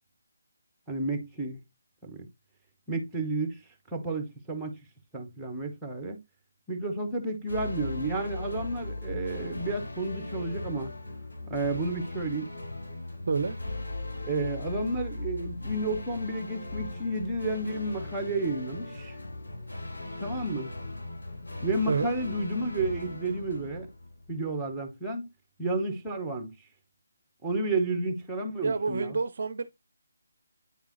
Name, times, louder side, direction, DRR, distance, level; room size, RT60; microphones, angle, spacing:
voice 1, 0.9-1.6 2.0-2.3 2.9-3.6 3.9-4.8 5.1-6.2 6.7-10.9 11.5-12.5 14.2-19.2 20.2-20.7 21.6-23.9 24.3-25.3 25.6-26.5 27.4-29.2, right 2 dB, 5° right, 1.1 m, -31 dB
sound 1, 7.5-24.5, left 2 dB, 70° left, 2.7 m, -38 dB
voice 2, 28.6-29.7, right 4 dB, 50° right, 0.5 m, -28 dB
9.1 x 3.6 x 3.1 m
figure-of-eight pair, 150°, 0 cm